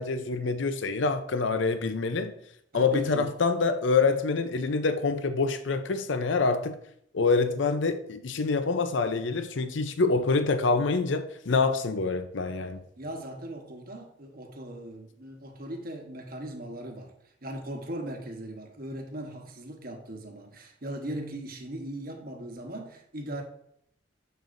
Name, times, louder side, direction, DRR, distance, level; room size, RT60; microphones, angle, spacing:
voice 1, 0.0-2.3 2.7-6.7 7.1-12.8, left 4 dB, 75° left, 0.6 m, -26 dB
voice 2, 2.7-3.3 13.0-23.4, right 1 dB, 50° right, 1.1 m, -39 dB
6.8 x 6.5 x 2.6 m
head